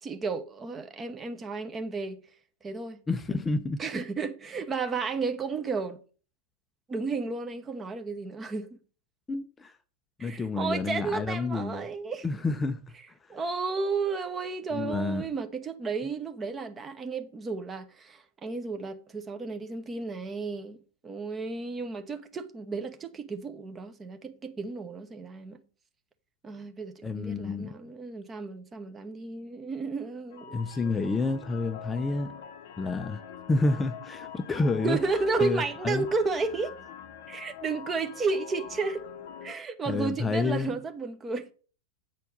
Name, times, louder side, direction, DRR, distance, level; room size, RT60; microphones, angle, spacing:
voice 1, 0.0-2.2 2.6-3.0 3.8-6.0 6.9-8.8 10.2-12.3 13.3-20.8 21.0-25.6 26.4-30.6 34.8-36.7 37.3-39.0 39.4-41.5, right 4 dB, 20° right, 0.9 m, -32 dB
voice 2, 3.1-3.8 9.3-9.7 10.2-11.9 12.2-12.8 14.7-15.2 27.0-27.7 30.5-32.3 32.8-33.2 33.5-35.0 35.4-36.0 39.9-40.7, left 3 dB, 15° left, 0.6 m, -29 dB
sound 1, 30.3-39.6, left 8 dB, 50° left, 0.8 m, -44 dB
8.2 x 4.4 x 6.6 m
figure-of-eight pair, 90°, 0 cm